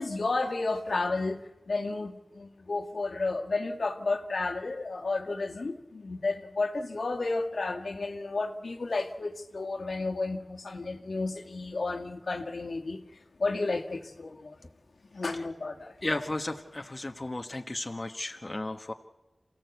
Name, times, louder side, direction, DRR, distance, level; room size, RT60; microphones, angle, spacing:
voice 1, 0.0-13.0 13.4-14.6 15.1-15.9, left 3 dB, 80° left, 4 dB, 1.7 m, -32 dB
voice 2, 16.0-18.9, left 2 dB, 40° left, 5 dB, 1.3 m, -34 dB
27.5 x 15.5 x 8.2 m, 1.1 s
wide cardioid pair, 60°, 0 cm